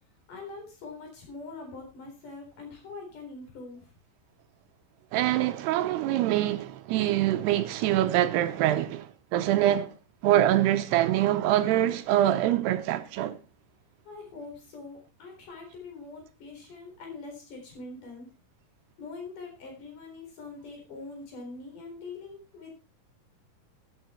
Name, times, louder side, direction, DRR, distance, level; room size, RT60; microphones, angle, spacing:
voice 1, 0.3-3.9 14.1-18.3 19.0-22.7, left 3 dB, 50° left, 5.4 m, -43 dB
voice 2, 5.1-9.9 10.2-13.4, right 13 dB, 80° right, 2.6 m, -24 dB
12.0 x 9.8 x 4.4 m
omnidirectional pair, 5.0 m